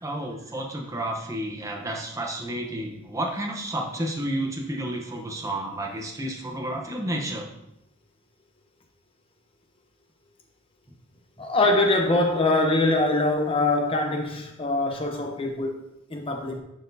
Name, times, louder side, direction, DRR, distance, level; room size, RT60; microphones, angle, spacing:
voice 1, 0.0-7.5, right 1 dB, 15° right, 0 dB, 0.8 m, -31 dB
voice 2, 11.4-15.7 16.1-16.6, left 2 dB, 25° left, 3 dB, 0.8 m, -23 dB
10.5 x 4.2 x 2.7 m, 0.86 s
head